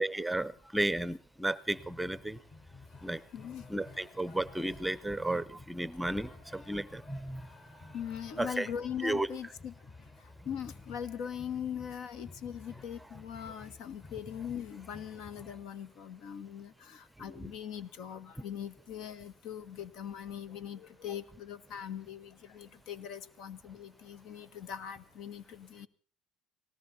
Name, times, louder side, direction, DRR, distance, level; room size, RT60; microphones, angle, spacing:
voice 1, 0.0-2.4 3.0-3.2 3.7-7.4 8.4-8.7 9.0-9.3 17.3-17.5, right 1 dB, 5° right, 17 dB, 0.8 m, -33 dB
sound 1, 1.7-15.6, left 3 dB, 35° left, 6.0 m, -53 dB
voice 2, 3.3-3.6 4.3-4.4 5.9-6.0 7.9-9.7 10.2-25.9, left 8 dB, 65° left, 14 dB, 1.5 m, -41 dB
19.0 x 18.0 x 4.2 m, 0.40 s
supercardioid pair, 95°, 0 cm